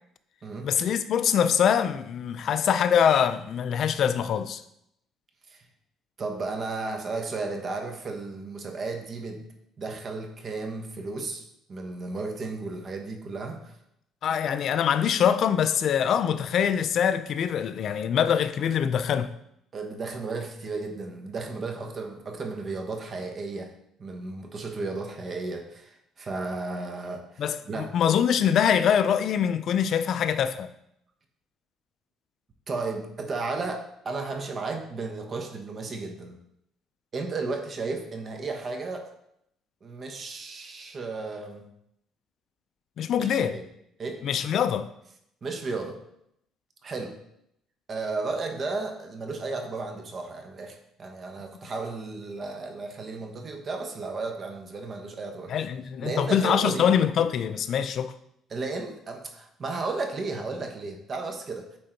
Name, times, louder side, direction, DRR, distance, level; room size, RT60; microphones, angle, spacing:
voice 1, 0.6-4.6 14.2-19.3 27.4-30.7 43.0-43.6 44.2-44.9 55.5-58.1, left 8 dB, 55° left, 0.5 m, -24 dB
voice 2, 6.2-9.4 9.8-11.4 11.7-13.8 19.7-23.7 24.0-27.9 32.7-36.3 37.1-39.1 39.8-41.6 43.2-43.6 44.0-44.3 45.4-46.0 46.8-47.1 47.9-55.7 56.0-56.9 58.5-61.7, right 3 dB, 35° right, 1.1 m, -34 dB
8.8 x 3.8 x 4.5 m
cardioid pair, 130°, 0 cm